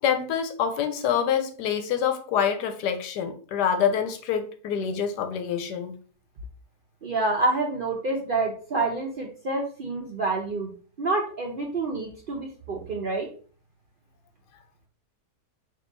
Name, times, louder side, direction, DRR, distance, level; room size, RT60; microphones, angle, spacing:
voice 1, 0.0-6.0, left 8 dB, 85° left, 7 dB, 1.2 m, -26 dB
voice 2, 7.0-10.7 11.0-13.3, right 3 dB, 75° right, 0 dB, 0.4 m, -28 dB
3.7 x 2.6 x 3.8 m, 0.41 s
omnidirectional pair, 1.8 m